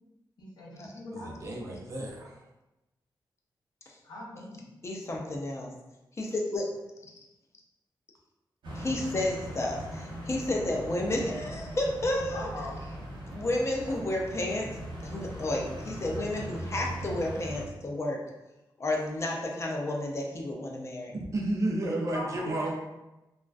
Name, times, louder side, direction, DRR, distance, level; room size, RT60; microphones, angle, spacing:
voice 1, 0.4-1.6 4.0-4.7 12.3-12.8 22.1-22.7, left 1 dB, 65° left, -4 dB, 0.7 m, -41 dB
voice 2, 1.1-2.4 21.1-22.7, right 1 dB, 40° right, -1 dB, 0.4 m, -32 dB
voice 3, 4.8-5.7 6.2-6.7 8.7-12.5 13.3-14.7 15.0-18.2 18.8-21.1, left 1 dB, 35° left, 0 dB, 0.4 m, -31 dB
sound 1, 8.6-17.6, right 1 dB, 85° right, 0.8 m, -40 dB
2.4 x 2.2 x 2.3 m, 0.98 s
wide cardioid pair, 135°, 8 cm